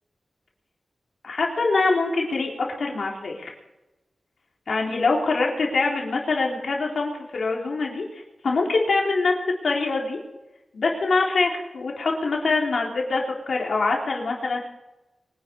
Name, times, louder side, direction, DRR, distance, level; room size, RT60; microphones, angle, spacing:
voice 1, 1.2-2.5 2.8-3.5 4.7-9.3 9.6-10.2 10.7-14.6, left 3 dB, 75° left, -1 dB, 3.8 m, -24 dB
23.5 x 11.0 x 5.3 m, 1.0 s
wide cardioid pair, 135°, 0 cm